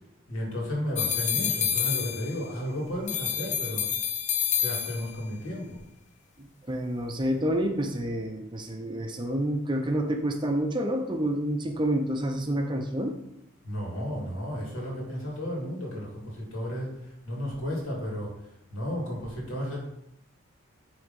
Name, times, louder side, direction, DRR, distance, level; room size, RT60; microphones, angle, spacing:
voice 1, 0.3-3.9 4.6-5.8 13.6-18.4 18.7-19.8, equal, 70° left, -2 dB, 2.6 m, -33 dB
sound 1, 0.9-2.6 3.1-5.3, left 8 dB, 35° left, 0.5 m, -28 dB
voice 2, 6.4-13.1, right 1 dB, 20° right, 4 dB, 0.6 m, -28 dB
9.5 x 3.5 x 5.3 m, 0.84 s
head